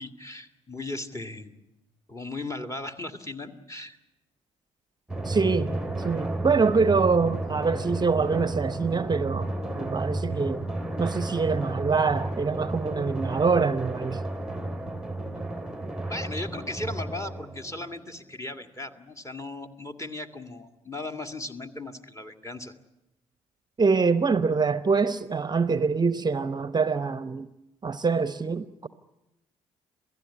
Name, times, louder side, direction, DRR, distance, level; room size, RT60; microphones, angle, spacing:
voice 1, 0.0-1.5 2.1-4.0 16.0-22.7, left 2 dB, 20° left, 2.1 m, -37 dB
Drum, 5.1-18.2, right 2 dB, 5° right, 1.2 m, -32 dB
voice 2, 5.2-10.7 11.0-14.2 23.8-27.5 27.8-28.9, right 4 dB, 25° right, 0.9 m, -25 dB
27.5 x 17.5 x 9.8 m
figure-of-eight pair, 45°, 16 cm